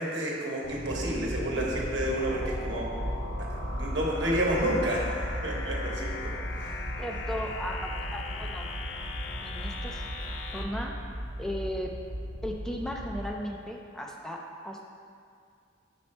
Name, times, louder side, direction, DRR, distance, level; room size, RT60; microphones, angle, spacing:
voice 1, 0.0-2.9 3.4-3.5 3.7-7.0, right 1 dB, 80° right, -3 dB, 1.1 m, -30 dB
sound 1, 0.6-10.6, left 3 dB, 85° left, 0.5 m, -40 dB
sound 2, 0.9-13.3, equal, 45° right, 0.7 m, -36 dB
voice 2, 7.0-8.7 9.4-10.0 10.5-10.9 11.4-11.9 12.4-14.4 14.6-14.8, equal, 5° left, 0 dB, 0.3 m, -36 dB
5.6 x 4.3 x 4.1 m, 2.3 s
head